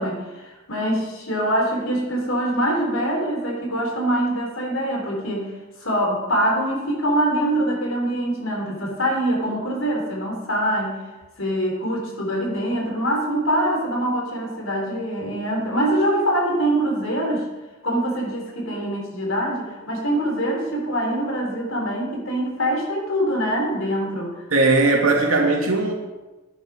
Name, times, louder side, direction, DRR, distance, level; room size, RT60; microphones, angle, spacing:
voice 1, 0.0-5.5 5.8-11.0 11.4-17.5 17.8-24.3, right 1 dB, 65° left, -1 dB, 4.0 m, -24 dB
voice 2, 24.5-25.9, right 3 dB, 80° right, 0 dB, 2.8 m, -18 dB
11.0 x 10.5 x 6.5 m, 1.1 s
head